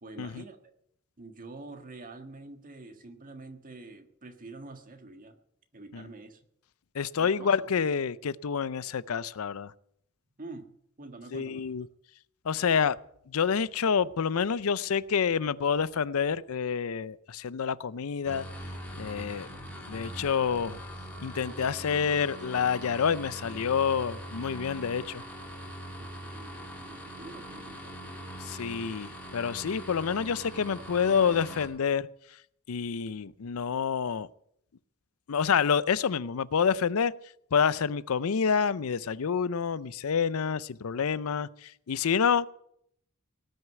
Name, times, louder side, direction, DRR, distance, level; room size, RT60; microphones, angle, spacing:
voice 1, 0.0-0.7 1.2-5.4 5.7-6.4 7.2-7.9 10.4-10.7 11.0-11.6 26.0-28.1, right 2 dB, 40° right, 6 dB, 1.6 m, -46 dB
voice 2, 6.9-9.7 11.3-11.9 12.4-13.0 13.3-18.5 19.0-19.5 19.9-20.8 21.2-25.2 28.4-32.1 32.7-34.3 35.3-37.1 37.5-42.5, left 6 dB, 75° left, 18 dB, 0.5 m, -28 dB
sound 1, 18.3-31.7, equal, 5° left, 2.8 m, -42 dB
18.5 x 6.5 x 9.2 m, 0.71 s
head